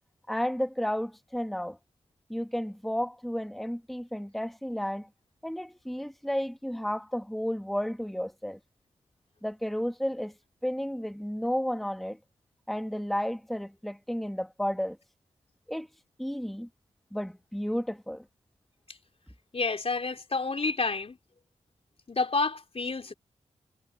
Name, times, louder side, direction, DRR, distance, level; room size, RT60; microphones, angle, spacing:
voice 1, 0.3-1.8 2.3-5.1 5.4-8.6 9.4-10.3 10.6-12.2 12.7-15.0 15.7-15.9 16.2-16.7 17.1-18.2, equal, ahead, 1.2 m, -32 dB
voice 2, 19.5-21.2 22.1-23.1, left 3 dB, 50° left, 3.6 m, -29 dB
cardioid pair, 60°, 13 cm